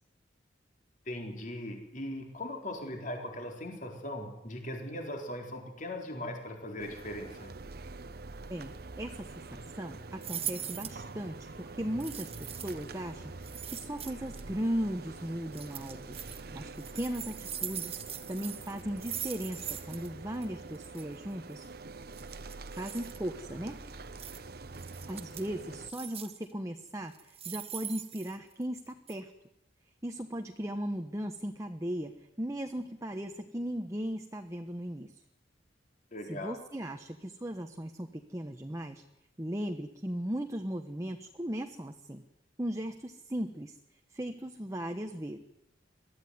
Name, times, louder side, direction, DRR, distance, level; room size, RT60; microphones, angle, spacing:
voice 1, 1.1-7.5 36.1-36.6, left 1 dB, 45° left, 2 dB, 4.2 m, -39 dB
sound 1, 6.8-25.9, right 3 dB, 55° right, 1.1 m, -46 dB
voice 2, 8.5-16.2 16.5-18.0 18.3-21.7 22.7-23.8 25.1-29.3 30.0-35.1 36.3-39.0 39.4-42.2 42.6-43.8 44.1-45.4, equal, 15° right, 5 dB, 1.1 m, -37 dB
sound 2, 10.2-11.0 12.0-12.8 13.4-14.4 15.5-16.4 16.8-20.1 20.3-20.4 20.7-21.0 22.1-23.2 24.2-24.4 24.7-25.5 25.9-26.4 27.1-28.8 29.1-29.2, right 9 dB, 35° right, 1.5 m, -41 dB
23.0 x 14.5 x 9.6 m, 0.91 s
head